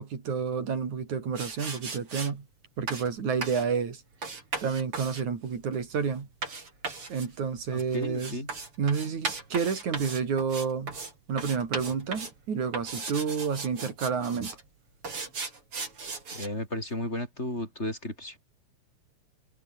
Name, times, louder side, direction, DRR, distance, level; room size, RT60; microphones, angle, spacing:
voice 1, 0.0-2.4 2.8-4.0 4.6-6.3 7.1-8.4 8.8-10.9 11.3-14.5, right 6 dB, 80° right, 4.9 m, -30 dB
sound 1, 1.4-2.3 2.9-3.1 3.4-3.7 4.2-11.1 11.4-12.4 12.7-14.6 15.0-16.5, right 4 dB, 45° right, 5.6 m, -37 dB
voice 2, 7.7-8.5 16.3-18.4, left 1 dB, 20° left, 7.2 m, -34 dB
omnidirectional pair, 3.3 m